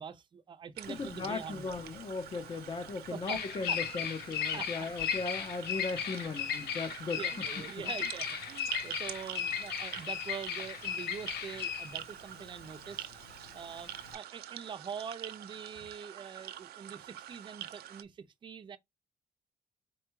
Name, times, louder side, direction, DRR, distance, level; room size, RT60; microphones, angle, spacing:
voice 1, 0.0-1.7 3.1-3.4 3.7-3.8 4.5-4.9 6.6-6.7 7.2-13.1 13.5-18.8, right 7 dB, 30° right, 0.5 m, -44 dB
sound 1, 0.8-18.0, right 12 dB, 80° right, 0.6 m, -46 dB
Bird vocalization bird call bird song, 0.9-14.1, left 8 dB, 90° left, 0.9 m, -37 dB
voice 2, 0.9-7.2 7.6-7.9, left 4 dB, 30° left, 0.6 m, -37 dB
4.3 x 2.2 x 4.6 m
cardioid pair, 170°, 16 cm